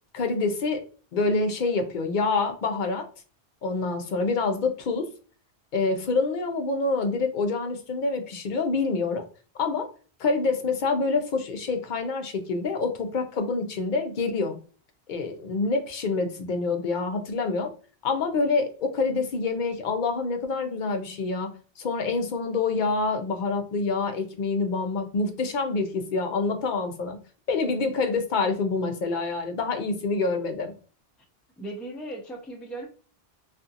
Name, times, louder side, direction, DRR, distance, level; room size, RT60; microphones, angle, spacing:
voice 1, 0.1-0.8 1.1-3.1 3.6-5.1 5.7-9.2 9.5-9.9 10.2-14.6 15.1-17.7 18.0-21.5 21.8-27.2 27.5-30.7, left 3 dB, 60° left, 5 dB, 0.6 m, -26 dB
voice 2, 31.6-32.9, right 1 dB, ahead, 0 dB, 0.3 m, -37 dB
2.6 x 2.5 x 2.4 m, 0.38 s
omnidirectional pair, 1.1 m